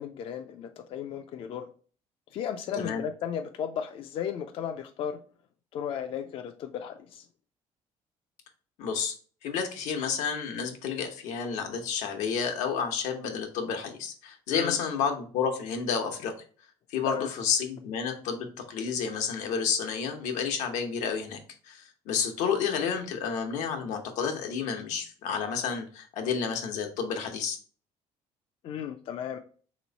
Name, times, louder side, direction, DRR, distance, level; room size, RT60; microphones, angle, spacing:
voice 1, 0.0-1.7 2.3-5.2 5.7-7.3 14.5-14.7 17.1-17.3 28.6-29.4, left 8 dB, 50° left, 6 dB, 0.4 m, -35 dB
voice 2, 8.8-9.1 9.4-16.3 16.9-27.6, left 6 dB, 85° left, 4 dB, 0.9 m, -30 dB
3.4 x 3.0 x 4.0 m, 0.42 s
cardioid pair, 140°, 12 cm